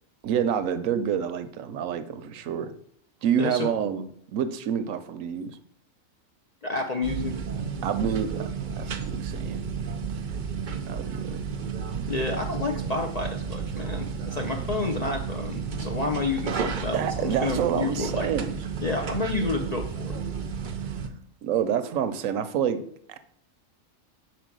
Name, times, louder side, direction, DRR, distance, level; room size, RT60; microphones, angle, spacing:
voice 1, 0.2-2.7 3.2-4.1 4.3-5.6 7.8-8.5 8.8-9.6 10.1-10.2 10.9-11.4 16.9-18.6 20.8-20.9 21.4-22.8 23.1-23.2, right 8 dB, 75° right, 11 dB, 1.0 m, -28 dB
voice 2, 3.4-3.7 6.6-7.4 12.1-18.3 18.8-20.2, left 3 dB, 45° left, 3 dB, 0.5 m, -30 dB
sound 1, 7.0-21.1, right 6 dB, 50° right, 0.6 m, -32 dB
5.1 x 4.5 x 6.1 m, 0.66 s
omnidirectional pair, 1.4 m